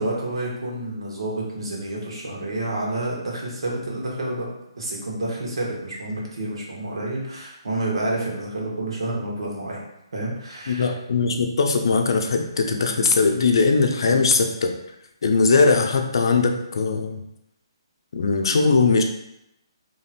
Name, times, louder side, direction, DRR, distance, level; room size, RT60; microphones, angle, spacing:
voice 1, 0.0-4.5 4.8-9.8 10.1-10.9 14.0-14.2, right 2 dB, 75° right, -3 dB, 1.6 m, -29 dB
voice 2, 10.7-14.7 15.2-17.2 18.1-19.0, left 4 dB, 60° left, 4 dB, 0.6 m, -20 dB
3.4 x 3.1 x 4.3 m, 0.83 s
hypercardioid pair, 165°, 3 cm